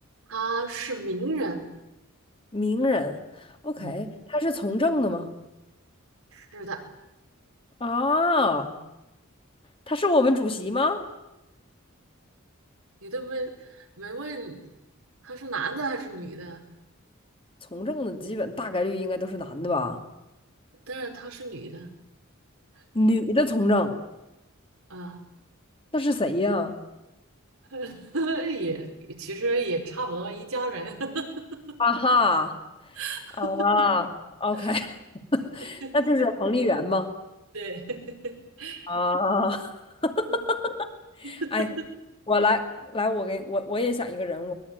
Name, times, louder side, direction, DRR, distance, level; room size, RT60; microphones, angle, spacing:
voice 1, 0.3-1.6 3.8-4.0 6.3-6.8 13.0-14.6 15.2-16.6 20.9-21.9 24.9-25.2 27.7-31.8 32.9-33.9 34.5-34.8 35.8-36.3 37.5-38.9 40.3-40.4 41.2-41.9, right 3 dB, 85° right, 3 dB, 4.9 m, -33 dB
voice 2, 2.5-3.2 3.6-5.3 7.8-8.7 9.9-11.0 17.7-20.0 22.9-24.0 25.9-26.7 31.8-32.5 33.4-34.1 34.4-35.0 35.3-37.1 38.9-39.8 40.0-40.9 41.2-41.7 42.3-44.5, left 2 dB, 25° left, 5 dB, 2.3 m, -25 dB
23.0 x 20.5 x 9.5 m, 0.94 s
head